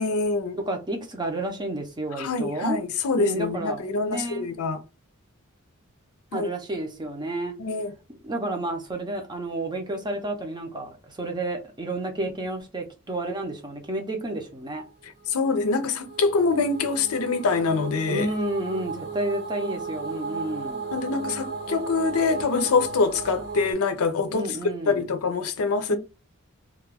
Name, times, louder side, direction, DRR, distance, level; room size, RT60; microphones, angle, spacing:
voice 1, 0.0-0.6 2.2-4.8 6.3-6.5 7.6-7.9 15.3-18.3 20.9-24.6 24.9-26.0, left 4 dB, 90° left, 0.5 m, -25 dB
voice 2, 0.6-2.8 3.2-4.5 6.3-7.5 8.2-14.8 18.1-20.9 24.3-25.0 25.9-26.0, right 1 dB, 20° right, 0.5 m, -31 dB
sound 1, 15.2-23.7, right 4 dB, 50° right, 0.8 m, -35 dB
2.3 x 2.2 x 3.4 m
head